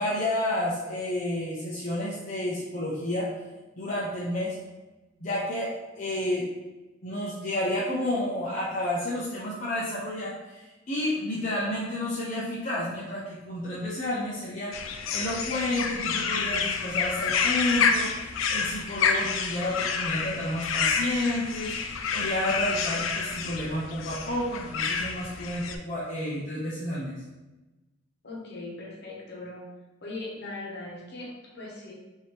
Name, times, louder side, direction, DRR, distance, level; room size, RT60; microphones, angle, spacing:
voice 1, 0.0-3.3 3.8-4.6 5.2-6.5 7.0-27.2, left 1 dB, 40° left, -7 dB, 0.6 m, -30 dB
voice 2, 11.1-11.4 28.2-29.7 30.0-31.9, left 2 dB, 55° left, -4 dB, 1.2 m, -40 dB
sound 1, 14.7-25.8, left 6 dB, 85° left, 0.4 m, -29 dB
4.6 x 2.7 x 3.4 m, 1.1 s
head